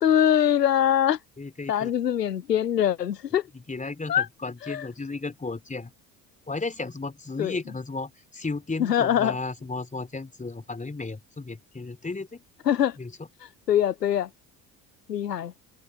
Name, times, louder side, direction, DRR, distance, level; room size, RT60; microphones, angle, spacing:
voice 1, 0.0-1.2 1.7-3.4 4.1-4.3 4.6-4.9 7.4-7.6 8.8-9.4 12.7-13.0 13.7-14.3 15.1-15.5, left 10 dB, 85° left, 1.0 m, -23 dB
voice 2, 1.4-1.9 3.5-5.9 6.5-12.4 13.0-13.3, left 3 dB, 15° left, 3.8 m, -34 dB
figure-of-eight pair, 55°, 47 cm